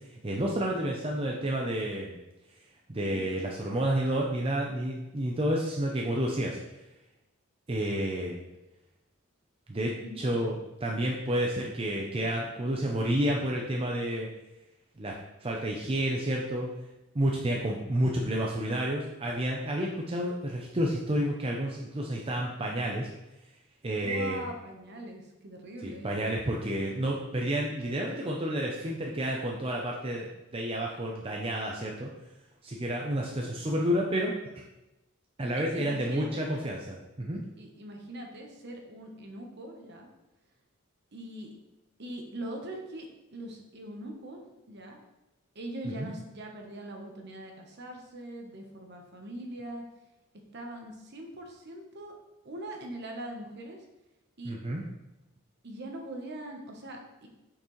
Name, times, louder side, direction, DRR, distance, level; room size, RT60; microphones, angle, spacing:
voice 1, 0.1-2.2 2.9-6.6 7.7-8.4 9.7-10.5 10.8-14.3 15.0-15.1 15.4-16.7 17.1-23.1 23.8-24.4 25.8-32.1 32.6-34.6 35.4-37.4 45.8-46.1 54.4-54.8, right 1 dB, 25° right, -1 dB, 0.6 m, -30 dB
voice 2, 24.0-26.1 35.5-36.5 37.6-40.1 41.1-41.5 42.0-45.0 45.5-49.8 50.5-52.1 52.4-53.8 54.4-54.6 55.6-57.3, right 1 dB, 50° right, 2 dB, 1.0 m, -42 dB
6.7 x 5.9 x 3.1 m, 0.98 s
head